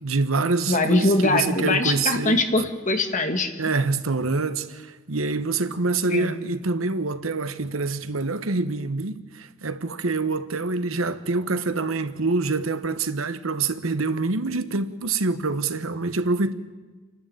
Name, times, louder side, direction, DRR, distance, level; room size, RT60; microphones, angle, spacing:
voice 1, 0.0-2.4 3.6-16.5, right 3 dB, 85° right, 1.2 m, -26 dB
voice 2, 0.7-3.5 6.1-6.3, left 2 dB, 40° left, 2.0 m, -22 dB
29.0 x 12.0 x 9.3 m
head